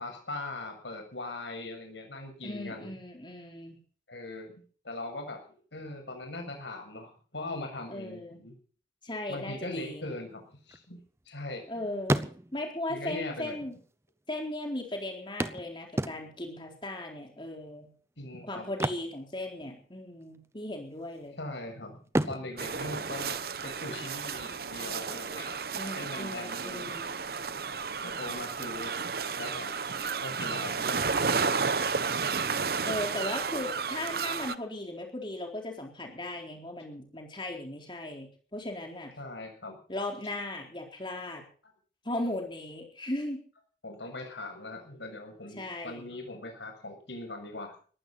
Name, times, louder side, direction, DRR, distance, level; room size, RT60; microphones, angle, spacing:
voice 1, 0.0-2.9 4.1-5.4 5.7-8.5 9.3-11.0 11.3-11.7 12.9-13.6 18.2-18.7 21.4-25.5 25.9-26.9 28.0-29.0 29.4-29.8 30.2-31.2 31.8-32.2 39.2-39.8 43.8-47.7, left 2 dB, 85° left, 4 dB, 7.0 m, -40 dB
voice 2, 2.4-3.8 7.9-8.4 9.0-10.1 11.7-12.3 12.5-13.8 14.3-17.9 18.5-21.4 25.7-27.1 32.8-39.1 39.9-41.4 42.0-43.4 45.6-46.0, left 1 dB, 25° left, 2 dB, 4.1 m, -37 dB
sound 1, 10.4-11.7 12.0-12.8 13.7-13.8 14.0-14.1 15.4-16.6 18.6-20.0 20.2-20.5 21.0-21.6 22.0-23.8 25.8-25.9 26.3-26.4, right 1 dB, 15° right, 0.7 m, -33 dB
sound 2, 22.6-34.5, right 5 dB, 55° right, 0.9 m, -32 dB
19.5 x 15.5 x 4.2 m, 0.42 s
head